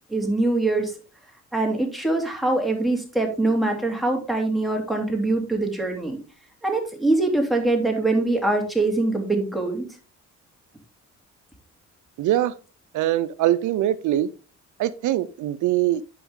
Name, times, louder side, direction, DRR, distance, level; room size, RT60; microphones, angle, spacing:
voice 1, 0.1-0.9 1.5-6.2 6.6-9.9, right 2 dB, ahead, 3.0 m, -23 dB
voice 2, 12.2-12.5 12.9-14.3 14.8-16.0, right 13 dB, 75° right, 0.6 m, -22 dB
10.5 x 5.5 x 3.6 m
cardioid pair, 90°, 30 cm